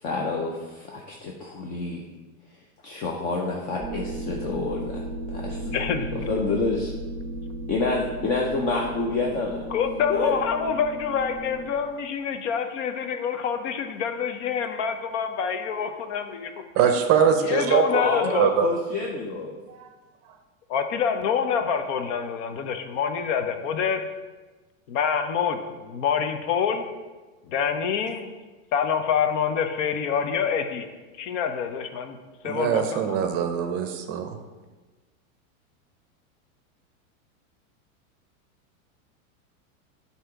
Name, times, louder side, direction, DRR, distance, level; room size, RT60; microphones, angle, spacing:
voice 1, 0.0-2.1 2.8-5.7 6.1-6.9 7.7-9.7 10.1-10.4 17.9-19.6, left 3 dB, 20° left, -1 dB, 0.3 m, -28 dB
sound 1, 3.8-11.7, right 1 dB, 5° right, 0.9 m, -35 dB
voice 2, 5.7-6.1 9.7-16.5 17.4-18.5 20.7-24.0 24.9-26.8 27.5-28.3 28.7-30.9 31.2-32.2 32.4-33.4, left 7 dB, 60° left, 7 dB, 0.7 m, -26 dB
voice 3, 16.8-17.8 18.3-18.7 19.7-19.9 32.4-34.4, right 8 dB, 35° right, 6 dB, 0.6 m, -22 dB
7.6 x 2.9 x 4.6 m, 1.2 s
supercardioid pair, 130°, 42 cm